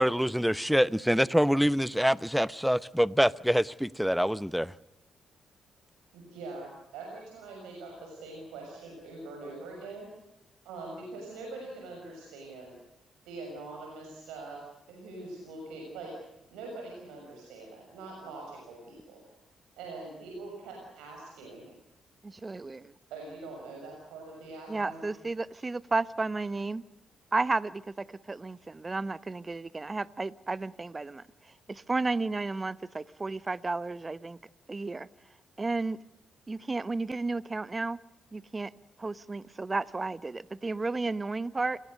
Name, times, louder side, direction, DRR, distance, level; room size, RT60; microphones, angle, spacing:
voice 1, 0.0-4.7, equal, ahead, 0.9 m, -25 dB
voice 2, 6.1-10.1 10.6-12.8 13.2-14.6 14.9-16.1 16.5-19.2 19.8-21.6 23.1-25.0, right 3 dB, 80° right, 6.6 m, -43 dB
voice 3, 22.2-22.9 24.7-26.8 27.3-31.2 31.7-34.4 34.7-35.1 35.6-36.0 36.5-38.0 38.3-38.7 39.0-41.8, right 3 dB, 30° right, 1.0 m, -32 dB
28.5 x 21.5 x 6.6 m
hypercardioid pair, 45°, 0 cm